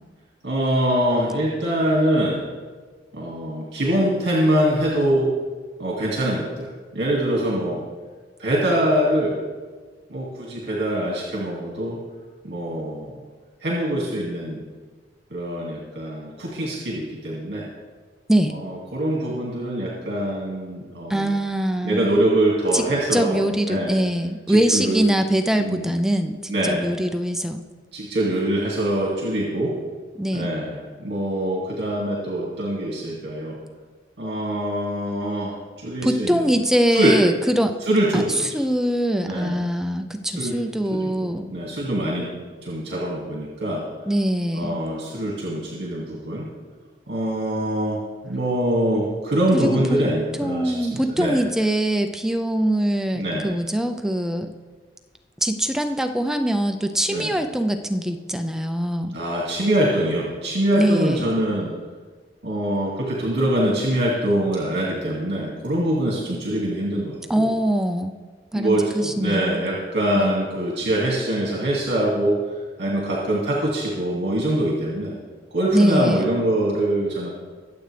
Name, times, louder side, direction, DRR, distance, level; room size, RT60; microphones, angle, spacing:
voice 1, 0.4-2.4 3.1-5.3 5.8-7.8 8.4-9.3 10.1-12.0 12.4-13.2 13.6-14.6 15.3-17.7 18.5-21.3 21.8-23.4 23.7-23.9 24.5-25.0 25.6-25.9 26.5-26.9 27.9-29.7 30.3-33.6 34.2-36.5 36.9-37.2 37.8-38.6 39.2-39.6 40.3-40.6 40.9-42.3 42.6-43.9 44.5-46.5 47.1-51.4 53.1-53.5 57.1-57.3 59.1-61.7 62.4-67.5 68.5-72.4 72.8-75.2 75.5-77.3, right 1 dB, 70° right, -3 dB, 2.2 m, -24 dB
voice 2, 21.1-22.1 22.7-22.8 23.1-27.6 30.2-30.5 36.0-37.7 38.1-38.2 38.5-41.5 44.1-44.8 49.5-50.0 50.4-54.5 55.4-59.1 60.8-61.3 67.3-68.1 68.5-69.6 70.2-70.3 75.7-76.3, right 1 dB, 5° right, 6 dB, 0.5 m, -22 dB
23.0 x 7.8 x 3.4 m, 1.4 s
head